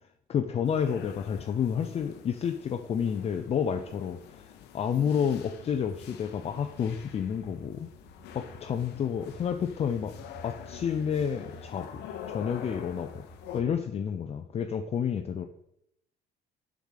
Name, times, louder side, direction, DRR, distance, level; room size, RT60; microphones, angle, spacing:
voice 1, 0.3-7.9 8.3-10.1 10.4-12.0 12.3-13.2 13.5-15.5, left 7 dB, 40° left, 6 dB, 0.5 m, -30 dB
sound 1, 0.6-13.6, left 9 dB, 85° left, 0.8 m, -47 dB
sound 2, 5.3-13.8, right 1 dB, ahead, 2.8 m, -51 dB
7.0 x 4.9 x 5.7 m, 0.78 s
cardioid pair, 110°, 17 cm